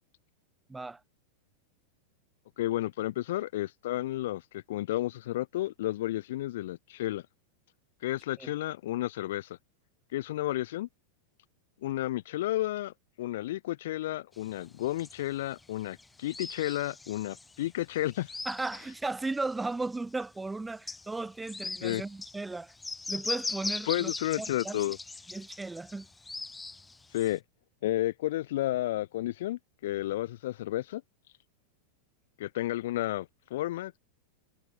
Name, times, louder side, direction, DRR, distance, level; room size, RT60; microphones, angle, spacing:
voice 1, 0.7-1.0 8.4-8.5 18.5-22.7 23.1-24.1 24.4-24.8 25.3-26.1, right 3 dB, 10° right, 5.4 m, -35 dB
voice 2, 2.6-7.2 8.0-9.5 10.1-10.9 11.8-18.3 21.8-22.0 23.9-25.0 27.1-27.4 27.8-31.0 32.4-34.0, left 15 dB, 55° left, 0.8 m, -32 dB
sound 1, 14.5-19.9 20.2-20.3 20.7-27.3, left 3 dB, 10° left, 1.7 m, -40 dB
figure-of-eight pair, 90°, 0 cm